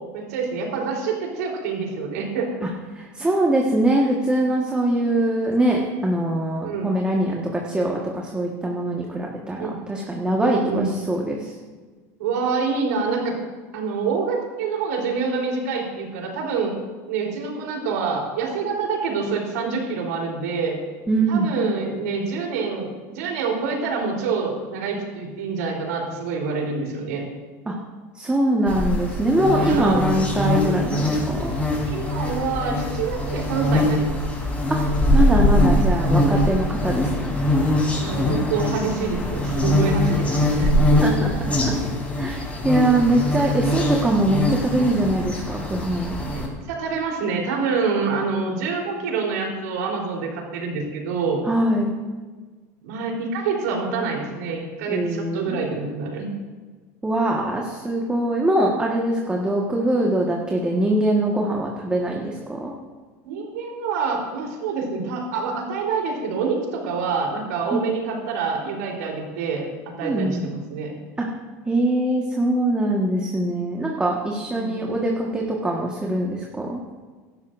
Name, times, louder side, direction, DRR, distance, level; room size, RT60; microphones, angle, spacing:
voice 1, 0.1-2.6 6.6-6.9 9.6-9.8 10.4-11.0 12.2-13.3 13.7-16.7 17.1-20.8 21.3-27.2 29.6-30.0 31.8-34.2 38.0-40.7 46.3-51.4 52.8-56.3 63.2-70.9 74.5-74.9, right 5 dB, 85° right, 0 dB, 3.7 m, -26 dB
voice 2, 2.9-11.5 21.1-21.5 27.7-27.8 28.1-31.5 34.7-34.8 35.1-37.4 41.0-41.3 41.6-42.4 42.6-46.1 51.4-51.9 54.9-55.7 57.0-62.7 67.7-67.8 70.0-70.4 71.2-71.3 71.7-76.8, right 1 dB, 10° right, -1 dB, 1.5 m, -23 dB
sound 1, 28.7-46.5, left 1 dB, 15° left, 3.9 m, -22 dB
16.5 x 12.5 x 2.6 m, 1.4 s
supercardioid pair, 120°, 8 cm